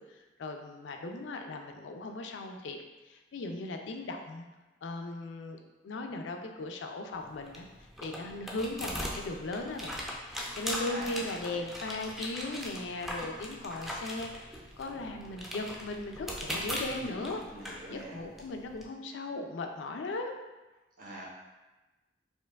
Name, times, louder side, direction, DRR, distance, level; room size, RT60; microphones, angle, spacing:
voice 1, 0.0-4.5 4.8-5.6 5.8-7.7 8.0-17.4 17.9-20.4, left 2 dB, 80° left, 4 dB, 0.4 m, -38 dB
sound 1, 7.1-18.8, equal, ahead, 0.3 m, -40 dB
voice 2, 10.8-11.6 16.8-18.2 21.0-21.3, right 1 dB, 50° right, -3 dB, 0.7 m, -44 dB
4.4 x 2.5 x 2.3 m, 1.1 s
head